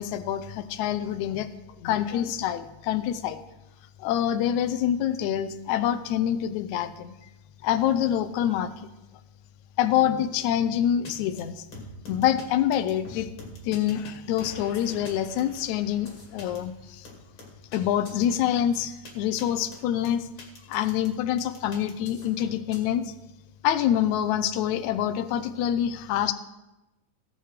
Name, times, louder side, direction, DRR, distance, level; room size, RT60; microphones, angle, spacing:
voice 1, 0.0-1.5 1.8-3.4 4.0-7.2 7.6-8.9 9.8-11.7 12.1-13.3 13.6-17.1 17.7-20.3 20.7-23.1 23.6-26.3, left 10 dB, 75° left, 12 dB, 1.8 m, -26 dB
sound 1, 11.0-11.1 11.4-11.5 11.7-12.4 12.7-14.1 14.4-16.6 17.0-17.8 18.0-18.2 18.7-19.1 19.4-19.5 19.7-21.1 21.4-22.8, left 2 dB, 40° left, 2.8 m, -44 dB
18.0 x 6.4 x 5.0 m, 1.0 s
omnidirectional pair, 3.8 m